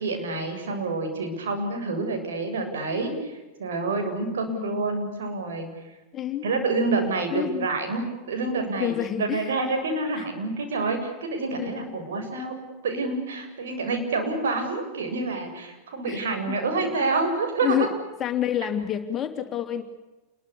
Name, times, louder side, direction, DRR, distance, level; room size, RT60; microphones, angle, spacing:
voice 1, 0.0-5.7 6.4-12.5 12.8-17.9, right 3 dB, 60° right, 4 dB, 7.5 m, -28 dB
voice 2, 4.5-4.9 6.1-6.5 7.3-7.7 8.8-9.5 10.2-10.3 11.6-12.0 16.1-16.3 17.0-17.1 17.6-17.9 18.2-19.8, left 11 dB, 25° left, 6 dB, 3.0 m, -29 dB
28.5 x 23.0 x 8.4 m, 1.1 s
figure-of-eight pair, 90°, 0 cm